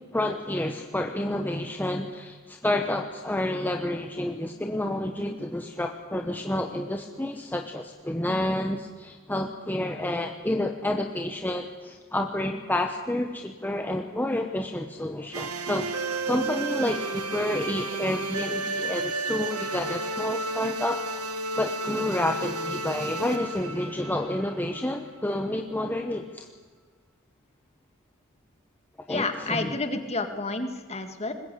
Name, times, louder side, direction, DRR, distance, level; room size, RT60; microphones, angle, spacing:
voice 1, 0.1-21.0 21.6-26.5 29.1-29.8, left 1 dB, 10° left, 3 dB, 1.0 m, -29 dB
sound 1, 15.3-25.2, right 2 dB, 85° right, 1.7 m, -32 dB
voice 2, 29.1-31.3, left 3 dB, 30° left, 7 dB, 1.9 m, -30 dB
21.0 x 20.5 x 8.4 m, 1.5 s
head